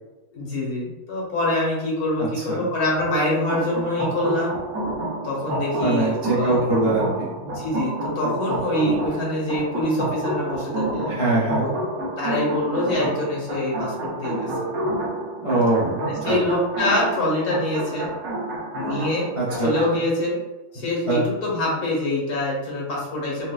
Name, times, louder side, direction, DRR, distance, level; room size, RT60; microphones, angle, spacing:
voice 1, 0.3-4.6 5.2-6.7 7.4-11.7 12.2-14.5 16.1-18.1 18.7-19.3 19.6-20.4 20.7-23.5, left 1 dB, 75° left, -4 dB, 1.6 m, -25 dB
voice 2, 2.3-2.7 5.8-7.3 11.1-11.7 15.4-16.4 19.4-20.0 21.1-21.2, right 2 dB, 40° left, -8 dB, 0.4 m, -23 dB
sound 1, 3.1-19.9, right 2 dB, 70° right, 1.2 m, -29 dB
4.5 x 2.1 x 2.3 m, 1.1 s
omnidirectional pair, 1.6 m